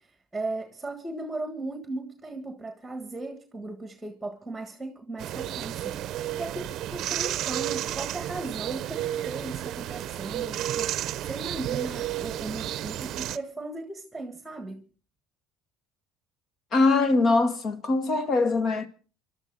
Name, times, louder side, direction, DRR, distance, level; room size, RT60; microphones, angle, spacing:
voice 1, 0.0-14.9, right 2 dB, 10° right, 1.5 m, -37 dB
sound 1, 5.2-13.4, right 12 dB, 55° right, 0.7 m, -32 dB
voice 2, 16.7-18.9, left 3 dB, 45° left, 1.8 m, -22 dB
27.0 x 12.0 x 4.0 m
supercardioid pair, 115°, 0 cm